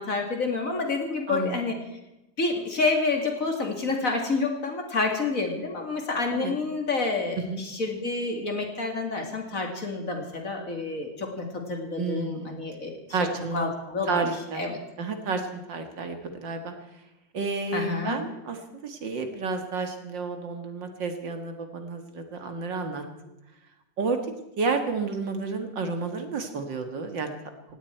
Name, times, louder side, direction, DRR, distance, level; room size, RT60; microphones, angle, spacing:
voice 1, 0.0-1.8 2.4-13.0 13.5-14.3 14.6-14.8 17.7-18.2, left 3 dB, 40° left, 3 dB, 2.7 m, -28 dB
voice 2, 1.3-1.6 6.3-6.5 7.4-7.6 12.0-12.6 13.1-13.7 14.1-14.6 15.0-16.7 17.3-23.0 24.0-24.2 24.6-27.3, right 4 dB, 65° right, 6 dB, 2.4 m, -31 dB
18.5 x 17.0 x 4.5 m, 0.93 s
omnidirectional pair, 2.2 m